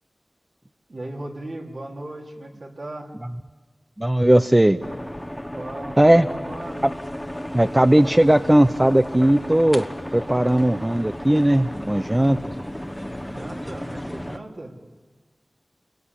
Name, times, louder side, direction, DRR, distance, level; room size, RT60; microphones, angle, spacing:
voice 1, 0.9-3.1 5.5-6.8 13.2-14.7, right 1 dB, 65° right, -1 dB, 4.0 m, -37 dB
voice 2, 4.0-4.8 6.0-6.3 7.5-9.8 10.1-12.4, right 1 dB, 15° right, 9 dB, 0.8 m, -17 dB
sound 1, 4.8-14.4, equal, 5° left, 1.3 m, -34 dB
29.0 x 23.0 x 8.3 m, 1.3 s
wide cardioid pair, 60°, 0 cm